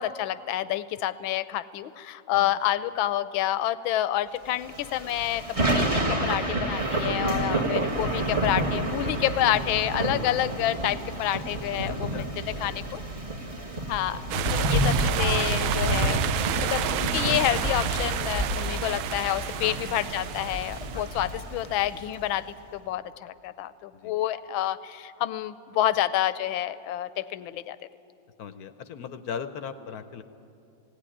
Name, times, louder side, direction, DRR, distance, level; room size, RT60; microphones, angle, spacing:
voice 1, 0.0-12.2 12.6-13.0 13.9-14.2 14.5-16.2 16.5-27.8, left 13 dB, 80° left, 15 dB, 1.4 m, -28 dB
Thunder / Rain, 4.7-22.2, right 1 dB, 20° right, 1.1 m, -29 dB
voice 2, 7.5-7.8 11.9-12.3 12.6-13.0 13.7-13.9 19.6-19.9 20.9-21.0 23.9-24.2 28.4-30.2, left 7 dB, 60° left, 11 dB, 1.0 m, -39 dB
sound 1, 14.3-21.5, right 10 dB, 85° right, 1.5 m, -31 dB
18.5 x 17.0 x 9.9 m, 2.8 s
omnidirectional pair, 2.1 m